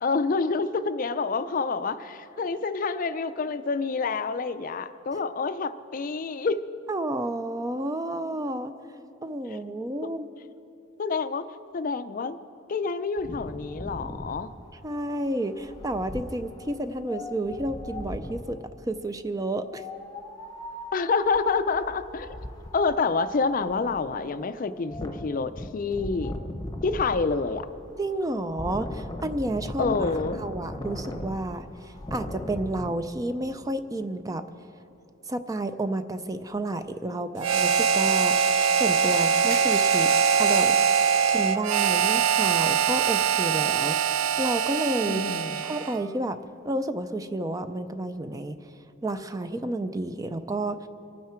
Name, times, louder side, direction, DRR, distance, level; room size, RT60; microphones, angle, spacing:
voice 1, 0.0-6.6 11.0-11.5 11.7-12.4 12.7-14.5 20.9-22.4 22.7-26.3 26.8-27.7 29.8-30.4 45.1-45.7, left 4 dB, 40° left, 12 dB, 0.4 m, -27 dB
voice 2, 6.9-8.7 9.2-10.3 14.8-18.6 18.9-19.8 28.0-30.0 30.3-34.4 35.3-40.1 40.4-40.8 41.3-45.3 45.6-46.4 46.6-48.6 49.0-50.9, right 1 dB, 15° right, 10 dB, 0.4 m, -31 dB
Wind, 13.2-18.6 19.6-32.9, left 1 dB, 20° left, 0.8 m, -39 dB
Harmonica, 37.4-46.0, right 7 dB, 90° right, 0.5 m, -23 dB
sound 1, 38.3-41.2, right 3 dB, 50° right, 3.1 m, -41 dB
24.0 x 9.4 x 4.4 m, 2.8 s
head